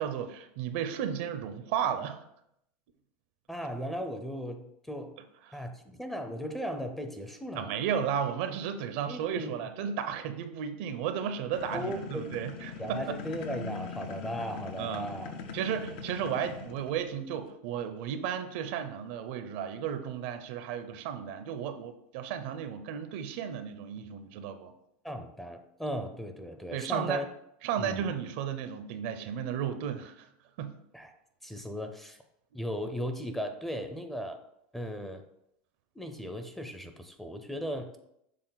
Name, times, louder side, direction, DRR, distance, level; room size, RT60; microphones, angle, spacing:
voice 1, 0.0-2.2 5.5-5.6 7.5-13.1 14.8-15.1 15.5-24.7 26.7-27.2 27.6-30.3 30.6-30.7, right 8 dB, 65° right, 9 dB, 0.7 m, -34 dB
voice 2, 3.5-5.2 5.5-7.7 9.1-9.6 11.7-12.2 12.8-15.3 25.0-27.3 27.8-28.1 30.9-31.1 31.4-32.2 32.5-34.4 34.7-35.2 36.0-38.0, equal, 5° left, 6 dB, 0.6 m, -37 dB
sound 1, 11.5-17.2, left 4 dB, 65° left, 0.7 m, -41 dB
6.7 x 3.6 x 4.0 m, 0.77 s
supercardioid pair, 125°, 6 cm